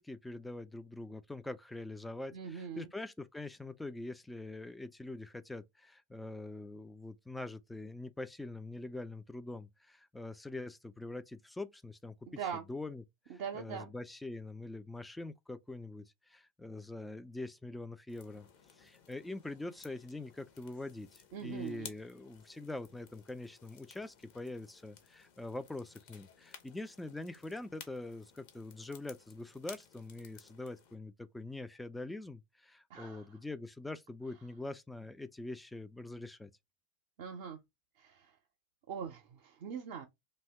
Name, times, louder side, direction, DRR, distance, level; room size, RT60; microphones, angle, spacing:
voice 1, 0.0-12.4 12.7-18.5 18.7-36.5, left 2 dB, 5° left, 0.3 m, -44 dB
voice 2, 2.3-2.9 12.4-12.6 13.3-13.9 21.3-21.9 32.9-33.2 37.2-37.6 38.0-38.3 38.9-40.1, right 7 dB, 55° right, 0.5 m, -42 dB
sound 1, 18.1-31.0, left 7 dB, 50° left, 0.7 m, -57 dB
2.7 x 2.2 x 3.2 m
figure-of-eight pair, 85°, 0 cm